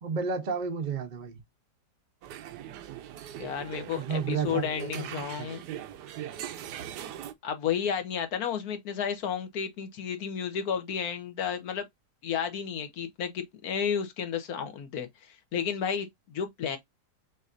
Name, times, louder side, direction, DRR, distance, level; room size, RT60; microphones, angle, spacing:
voice 1, 0.0-1.4 3.9-5.5, right 5 dB, 45° right, 0.6 m, -32 dB
sound 1, 2.2-7.3, right 11 dB, 80° right, 1.2 m, -40 dB
voice 2, 3.4-5.6 7.4-11.9 12.2-16.8, left 7 dB, 65° left, 1.3 m, -32 dB
6.2 x 2.6 x 2.4 m
omnidirectional pair, 1.8 m